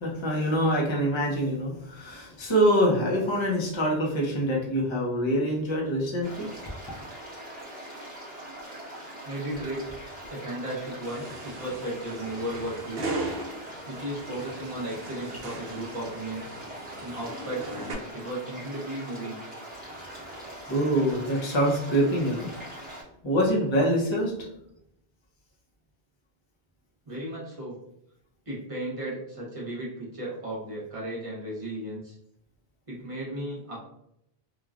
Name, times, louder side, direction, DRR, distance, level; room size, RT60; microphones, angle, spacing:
voice 1, 0.0-6.5 20.3-22.5 23.2-24.3, equal, 30° left, -3 dB, 0.7 m, -25 dB
sound 1, 6.2-23.0, right 1 dB, 10° right, 0.9 m, -42 dB
voice 2, 9.2-9.9 10.3-13.1 13.9-16.5 17.0-19.4 27.1-27.8 28.5-32.2 32.9-33.8, right 1 dB, 35° right, -5 dB, 0.9 m, -35 dB
sound 2, 11.0-17.9, right 2 dB, 70° right, 0.8 m, -38 dB
3.1 x 2.2 x 2.4 m, 0.78 s
omnidirectional pair, 1.0 m